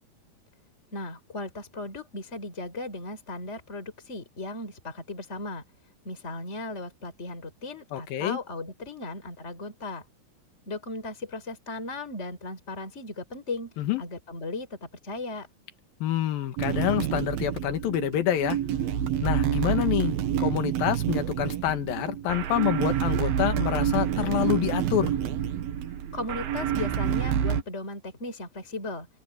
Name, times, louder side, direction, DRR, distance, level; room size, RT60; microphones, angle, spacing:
voice 1, 0.9-5.6 6.0-10.0 10.7-15.5 26.1-29.1, left 2 dB, 15° left, 5.2 m, -36 dB
voice 2, 7.9-8.4 13.8-14.0 16.0-18.6 19.2-25.1, left 12 dB, 65° left, 3.0 m, -27 dB
sound 1, 16.6-27.6, right 9 dB, 70° right, 3.2 m, -28 dB
open air
omnidirectional pair, 4.7 m